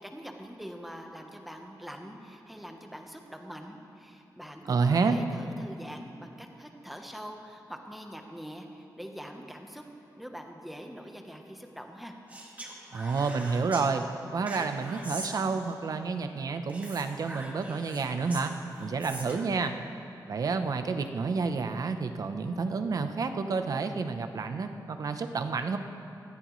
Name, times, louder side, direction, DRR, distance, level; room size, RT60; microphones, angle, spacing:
voice 1, 0.0-12.1, equal, ahead, 3 dB, 0.9 m, -44 dB
voice 2, 4.7-5.2 12.9-14.0 14.3-18.5 18.8-19.7 20.3-25.8, right 4 dB, 55° right, 8 dB, 0.7 m, -29 dB
Speech, 12.3-13.9 14.5-15.9 16.7-19.6, right 1 dB, 20° right, 1.6 m, -43 dB
18.0 x 14.0 x 3.1 m, 2.8 s
wide cardioid pair, 170°, 8 cm